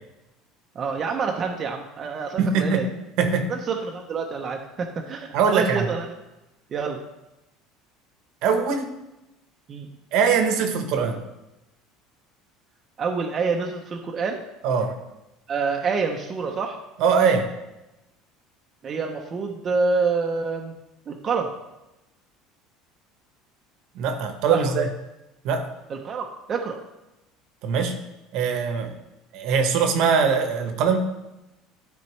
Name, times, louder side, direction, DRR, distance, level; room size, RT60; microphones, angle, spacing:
voice 1, 0.8-2.9 3.5-6.1 6.7-7.0 9.7-9.9 13.0-14.4 15.5-16.8 18.8-20.7 21.1-21.5 24.5-24.8 25.9-26.8, right 4 dB, 30° right, 2 dB, 0.6 m, -27 dB
voice 2, 2.4-2.9 3.2-3.5 5.3-5.9 8.4-8.9 10.1-11.2 14.6-14.9 17.0-17.5 23.9-24.9 25.4-25.7 27.6-28.0 28.3-28.9 29.3-31.1, right 6 dB, 60° right, 6 dB, 0.9 m, -22 dB
12.5 x 4.2 x 3.2 m, 0.96 s
cardioid pair, 150°, 0 cm